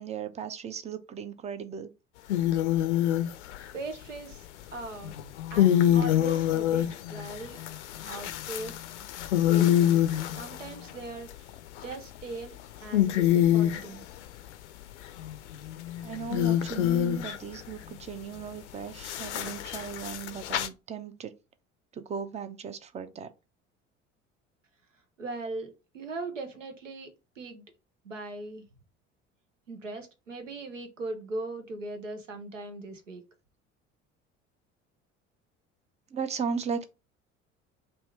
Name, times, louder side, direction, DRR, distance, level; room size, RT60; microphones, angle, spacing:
voice 1, 0.0-1.9 16.0-21.3 21.9-23.3 36.1-36.8, right 6 dB, 20° right, 0.4 m, -36 dB
sound 1, 2.3-3.7 5.0-10.9 11.5-12.2 12.6-12.7 12.9-13.9 15.2-17.5 19.0-20.7, left 11 dB, 70° left, 0.5 m, -26 dB
voice 2, 3.7-5.1 5.5-7.6 8.1-8.8 9.5-10.0 10.4-11.3 11.8-12.5 12.8-14.1 25.2-27.1 27.4-27.6 28.0-28.6 29.7-33.2, right 2 dB, 85° right, 0.7 m, -39 dB
3.4 x 2.6 x 4.2 m
figure-of-eight pair, 60°, 37 cm